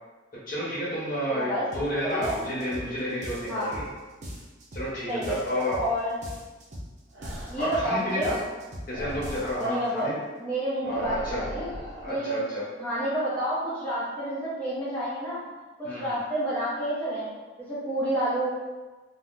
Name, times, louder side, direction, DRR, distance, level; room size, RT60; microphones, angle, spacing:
voice 1, 0.5-3.8 4.7-5.8 7.6-8.4 8.9-10.1 10.8-11.4 12.0-12.6 15.8-16.1, equal, 50° left, -7 dB, 0.9 m, -30 dB
voice 2, 1.3-1.7 2.0-2.4 3.5-3.7 5.1-5.4 5.8-6.1 7.5-8.3 9.6-10.1 10.4-11.7 12.1-12.4 12.8-15.4 15.8-17.3 17.6-18.5, right 1 dB, 10° left, -11 dB, 0.8 m, -29 dB
sound 1, 1.7-1.9 2.2-2.9 3.2-3.9 4.2-4.9 5.2-5.9 6.2-6.9 7.2-7.9 8.2-8.9 9.2-9.7, equal, 40° right, 0.5 m, -39 dB
sound 2, 7.1-7.8 8.9-9.6 10.8-12.1, equal, 80° right, 0.6 m, -38 dB
3.5 x 2.0 x 2.5 m, 1.2 s
head